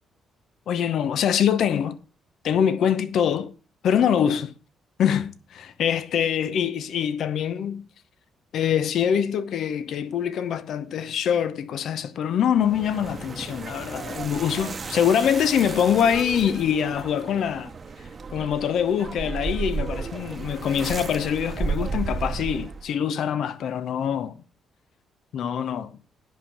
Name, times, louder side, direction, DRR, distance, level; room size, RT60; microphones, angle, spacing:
voice 1, 0.7-2.0 2.4-3.5 3.8-4.5 5.0-7.8 8.5-17.7 18.3-24.4 25.3-26.0, left 8 dB, 70° left, 0.9 m, -24 dB
sound 1, 12.5-22.9, right 4 dB, 40° right, 1.0 m, -33 dB
10.5 x 5.6 x 7.2 m
cardioid pair, 90°, 0 cm